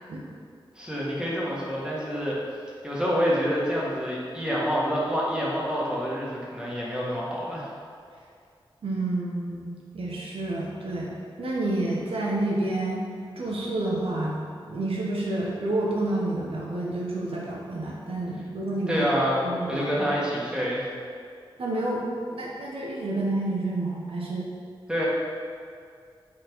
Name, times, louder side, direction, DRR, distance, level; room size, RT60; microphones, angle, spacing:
voice 1, 0.7-2.4 2.8-7.7 18.9-20.8 24.9-25.1, equal, 10° right, -6 dB, 1.4 m, -27 dB
voice 2, 8.8-11.1 11.4-13.0 13.4-14.4 14.6-19.0 19.4-19.8 21.6-22.0 22.3-24.5, right 2 dB, 90° right, -4 dB, 1.0 m, -29 dB
5.8 x 4.5 x 4.5 m, 2.2 s
wide cardioid pair, 110°, 9 cm